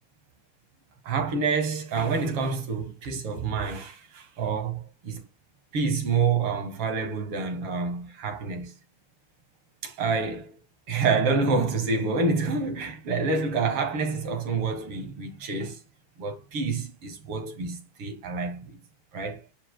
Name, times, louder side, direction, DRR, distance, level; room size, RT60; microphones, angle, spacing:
voice 1, 1.0-5.2 5.7-8.7 9.8-10.6 10.9-15.8 16.2-18.8 19.1-19.4, right 4 dB, 85° right, 2.7 m, -28 dB
9.9 x 4.7 x 2.3 m
omnidirectional pair, 2.4 m